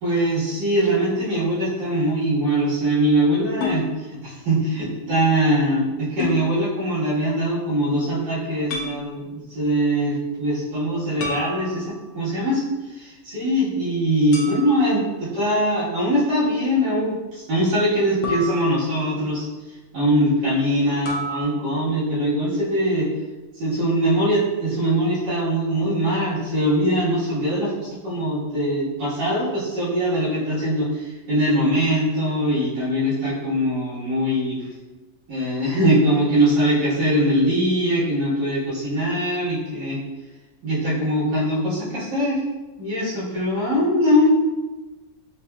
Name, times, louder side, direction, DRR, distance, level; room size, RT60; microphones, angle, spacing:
voice 1, 0.0-3.9 4.2-19.5 19.9-23.1 23.6-34.6 35.3-40.0 40.6-42.4 42.8-44.3, equal, 75° right, -11 dB, 2.0 m, -22 dB
sound 1, 3.6-3.8 6.2-6.4 8.7-9.0 11.2-12.1 14.3-14.9 18.2-19.2 21.1-21.4, left 2 dB, 70° left, 0.7 m, -30 dB
4.4 x 2.7 x 2.2 m, 1.2 s
omnidirectional pair, 1.9 m